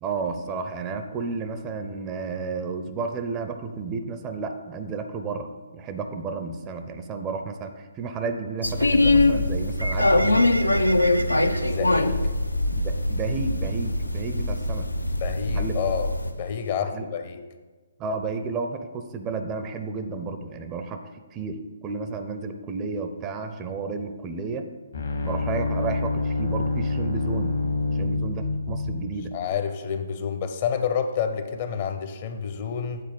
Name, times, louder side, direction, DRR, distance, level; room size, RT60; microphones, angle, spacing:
voice 1, 0.0-10.4 12.7-14.9 15.5-15.9 16.8-17.1 18.0-24.7 25.2-27.5 27.9-29.3, right 4 dB, 20° right, 6 dB, 0.6 m, -32 dB
sound 1, 8.6-16.3, left 2 dB, 80° left, 0.6 m, -22 dB
Bird, 9.5-16.8, right 1 dB, 85° right, 0.5 m, -39 dB
voice 2, 11.6-12.2 15.2-17.4 29.3-33.0, left 7 dB, 35° left, 7 dB, 0.7 m, -29 dB
sound 2, 24.9-29.3, left 3 dB, 60° left, 1.3 m, -27 dB
8.4 x 4.2 x 7.1 m, 1.3 s
figure-of-eight pair, 130°, 0 cm